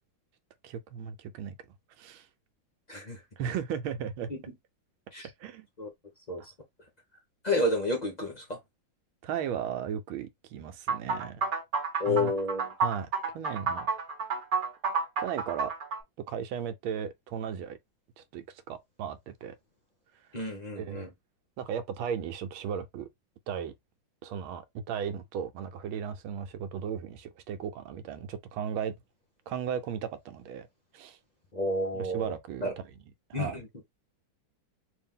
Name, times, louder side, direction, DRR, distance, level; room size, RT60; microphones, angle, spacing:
voice 1, 0.6-1.5 2.0-2.3 3.4-4.3 5.4-5.7 9.2-11.5 12.1-12.3 12.8-13.1 13.3-13.9 15.2-15.7 16.3-17.8 18.2-19.6 20.8-21.1 21.6-23.1 23.5-23.7 24.2-28.9 29.5-30.7 30.9-31.2 31.9-32.7 33.3-33.6, right 8 dB, 90° right, 1.5 m, -36 dB
voice 2, 2.9-3.2 4.3-4.4 5.1-5.3 5.8-5.9 6.3-6.4 7.4-8.6 12.0-12.6 20.3-21.1 31.5-32.3 32.6-32.7 33.3-33.7, left 2 dB, 60° left, 0.4 m, -30 dB
sound 1, 10.9-16.0, right 5 dB, 45° right, 1.0 m, -30 dB
3.4 x 2.8 x 3.6 m
omnidirectional pair, 2.2 m